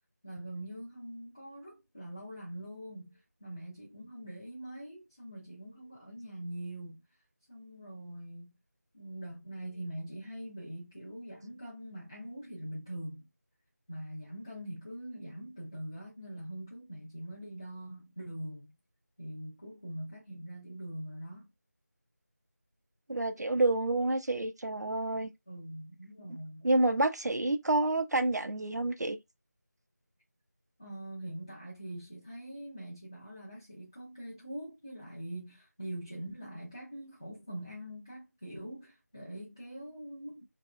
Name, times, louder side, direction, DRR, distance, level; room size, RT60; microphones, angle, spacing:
voice 1, 0.2-7.0 7.5-8.6 8.9-13.2 13.9-18.7 19.2-21.5 25.5-26.7 30.8-40.4, right 1 dB, 15° left, 0.4 m, -43 dB
voice 2, 23.1-25.3 26.6-29.2, right 2 dB, 90° right, 0.5 m, -28 dB
3.0 x 2.7 x 2.3 m
figure-of-eight pair, 170°, 9 cm